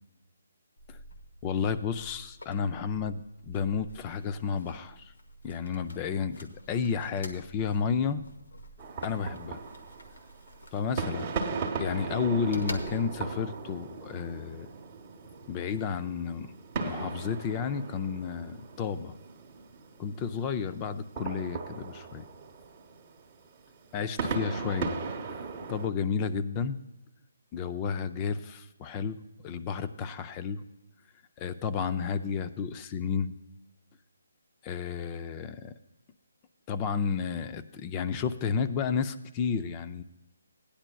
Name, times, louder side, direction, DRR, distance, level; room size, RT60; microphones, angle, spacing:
sound 1, 0.8-13.4, left 1 dB, 80° left, 1.1 m, -47 dB
voice 1, 1.4-5.1 5.4-8.2 9.0-9.6 10.7-11.3 11.8-14.7 15.5-19.1 20.0-22.2 23.9-25.0 25.3-25.4 25.7-26.8 27.5-29.2 29.4-30.6 31.4-33.3 34.6-35.7 36.7-40.0, left 6 dB, 20° left, 11 dB, 0.4 m, -32 dB
sound 2, 8.8-25.9, right 4 dB, 25° right, 1.0 m, -38 dB
16.5 x 10.0 x 2.3 m, 0.96 s
hypercardioid pair, 160°, 0 cm